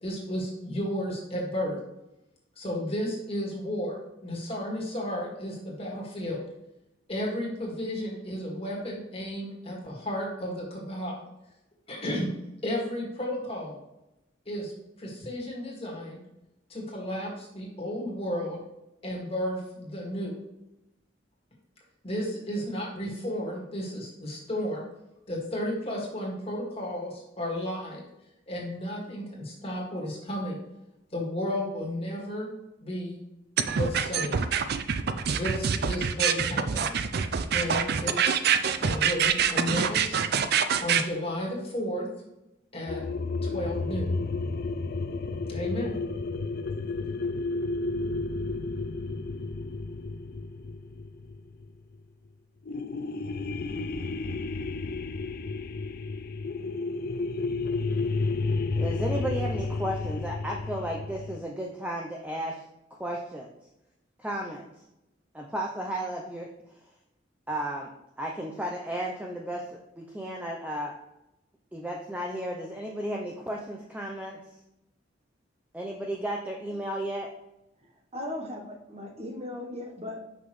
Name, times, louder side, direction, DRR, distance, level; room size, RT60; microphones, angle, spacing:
voice 1, 0.0-1.8 2.6-6.4 7.1-11.3 11.9-12.3 12.6-13.8 14.5-14.7 15.0-16.2 16.7-18.6 19.0-20.4 22.0-24.8 25.3-28.0 28.5-30.6 31.1-32.5 32.8-33.2 33.7-34.5 35.3-37.0 37.5-38.4 38.8-40.2 40.8-42.1 42.7-43.0 43.4-44.2 45.5-46.0, equal, 30° left, -3 dB, 1.9 m, -33 dB
sound 1, 33.6-41.0, right 7 dB, 55° right, 0.4 m, -25 dB
sound 2, 42.9-52.0 52.6-61.4, left 3 dB, 50° left, 0.4 m, -32 dB
voice 2, 58.8-62.6 63.0-63.5 64.2-64.6 65.3-66.5 67.5-67.9 68.2-70.9 71.7-74.4 75.7-77.3, right 1 dB, 5° right, 0 dB, 0.5 m, -33 dB
voice 3, 77.8-80.2, left 1 dB, 35° right, 1 dB, 1.0 m, -38 dB
6.1 x 5.7 x 3.1 m, 0.92 s
head